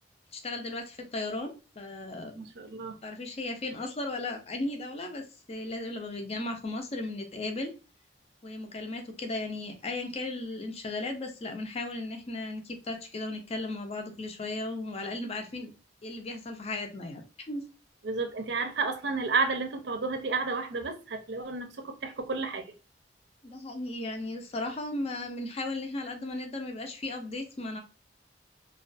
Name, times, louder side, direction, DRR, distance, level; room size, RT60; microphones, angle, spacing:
voice 1, 0.3-2.5 3.0-7.7 8.4-15.7 16.0-17.2 17.5-17.6 23.4-27.8, left 2 dB, 35° left, 0.5 m, -36 dB
voice 2, 2.3-2.9 18.0-22.7, right 4 dB, 70° right, 0.5 m, -31 dB
2.3 x 2.2 x 2.5 m
head